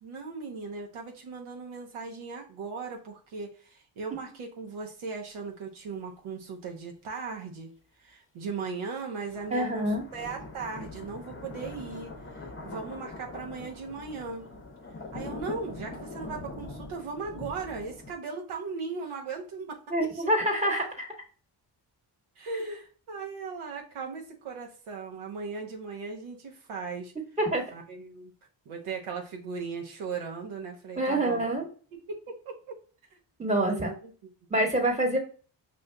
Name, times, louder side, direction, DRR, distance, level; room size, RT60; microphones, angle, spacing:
voice 1, 0.0-7.7 8.0-14.5 15.1-20.3 22.4-27.1 27.7-28.3 28.7-31.4 31.9-32.6 33.1-33.2 33.7-34.3, right 4 dB, 80° right, 2 dB, 0.9 m, -38 dB
sound 1, 9.2-18.1, left 2 dB, 25° left, 0.8 m, -42 dB
voice 2, 9.5-10.0 19.9-21.1 27.4-27.6 31.0-31.6 33.4-33.9 34.5-35.2, right 1 dB, 15° right, 2 dB, 1.3 m, -26 dB
5.4 x 2.5 x 2.2 m, 0.40 s
cardioid pair, 70°, 48 cm